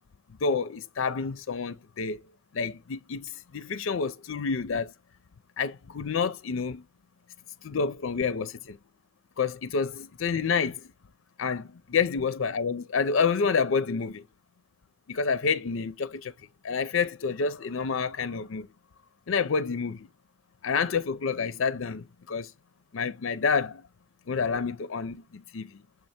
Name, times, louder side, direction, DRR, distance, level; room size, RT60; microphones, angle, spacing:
voice 1, 0.4-2.2 2.5-4.9 5.6-6.8 7.6-8.8 9.4-10.9 11.4-14.2 15.1-16.3 16.6-18.7 19.3-20.1 20.6-22.5 22.9-23.8 24.3-25.7, left 5 dB, 80° left, 0.5 m, -28 dB
6.8 x 3.3 x 4.2 m
head